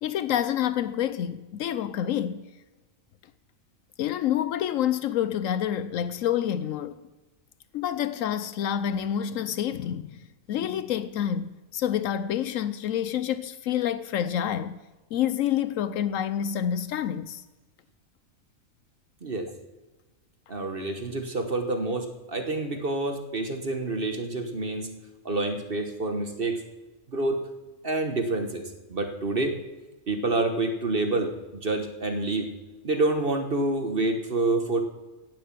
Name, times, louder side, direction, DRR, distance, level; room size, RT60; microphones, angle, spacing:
voice 1, 0.0-2.4 4.0-7.0 7.7-14.8 15.1-17.4, left 10 dB, 80° left, 1.0 m, -28 dB
voice 2, 20.5-24.9 25.2-26.6 27.1-27.5 27.8-29.6 30.1-32.5 32.8-34.8, right 2 dB, 45° right, 1.4 m, -28 dB
17.0 x 8.0 x 7.4 m
omnidirectional pair, 1.4 m